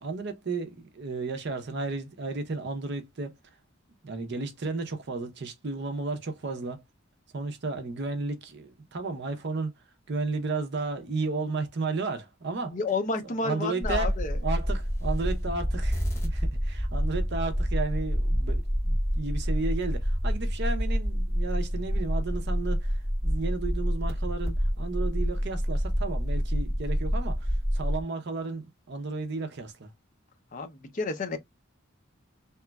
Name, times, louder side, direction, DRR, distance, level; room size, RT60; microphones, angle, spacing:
voice 1, 0.0-3.3 4.0-6.8 7.3-9.7 10.1-12.8 13.2-23.0 23.2-29.9, right 3 dB, 55° right, 0.6 m, -33 dB
voice 2, 12.7-14.4 30.5-31.4, left 3 dB, 35° left, 0.5 m, -30 dB
sound 1, 13.8-28.0, equal, 10° left, 1.0 m, -28 dB
2.9 x 2.2 x 2.2 m
head